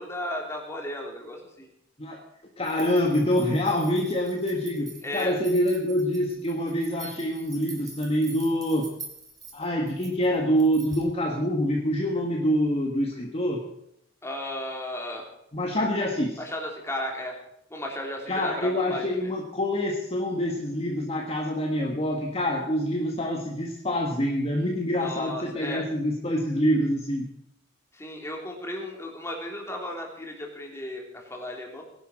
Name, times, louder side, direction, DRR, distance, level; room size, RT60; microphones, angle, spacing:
voice 1, 0.0-1.7 5.0-5.3 14.2-15.3 16.4-17.3 17.7-19.3 25.0-25.8 27.9-31.8, left 1 dB, 15° left, 0 dB, 3.4 m, -35 dB
voice 2, 2.6-8.9 9.5-13.6 15.5-16.4 18.3-27.3, equal, 30° left, 1 dB, 1.7 m, -26 dB
sound 1, 2.6-11.1, right 3 dB, 20° right, 3.1 m, -45 dB
20.0 x 11.0 x 6.4 m, 0.76 s
head